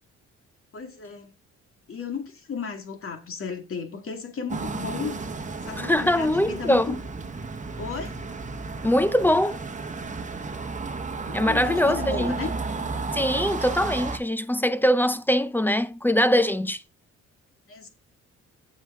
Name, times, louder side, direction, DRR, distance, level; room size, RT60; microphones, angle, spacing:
voice 1, 0.7-1.3 1.9-5.3 5.7-7.0 7.8-8.1 11.3-12.5 17.7-17.9, left 6 dB, 45° left, 2.0 m, -34 dB
sound 1, 4.5-14.2, right 4 dB, 25° right, 1.3 m, -33 dB
voice 2, 5.8-7.0 8.8-9.6 11.3-12.4 13.1-16.8, left 1 dB, 5° left, 0.6 m, -22 dB
7.6 x 7.4 x 3.6 m
cardioid pair, 90°, 30 cm